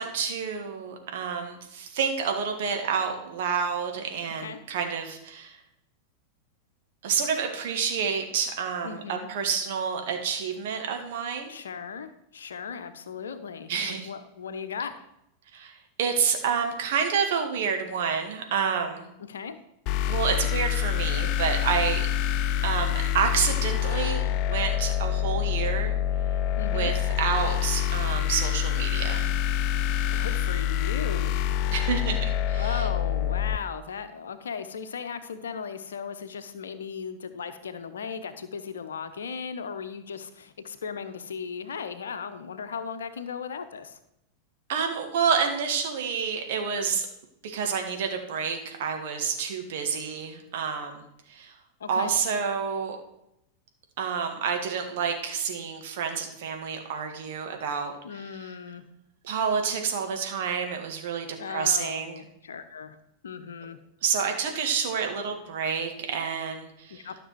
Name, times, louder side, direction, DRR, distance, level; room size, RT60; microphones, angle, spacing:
voice 1, 0.0-5.6 7.0-11.5 13.7-14.1 15.5-19.1 20.1-22.1 22.6-26.0 26.6-29.3 31.7-32.9 44.7-47.1 47.4-51.6 51.9-53.0 54.0-58.6 59.2-62.2 64.0-67.1, right 6 dB, 55° right, 4 dB, 1.7 m, -29 dB
voice 2, 8.8-9.3 11.5-14.9 19.3-19.6 26.6-26.9 30.1-31.3 32.5-44.0 51.8-52.1 58.0-58.8 61.4-63.0 63.2-63.8 66.9-67.2, left 6 dB, 65° left, 9 dB, 0.9 m, -37 dB
sound 1, 19.9-33.6, left 10 dB, 40° left, 0.4 m, -26 dB
12.5 x 6.1 x 4.6 m, 0.80 s
figure-of-eight pair, 90°, 0 cm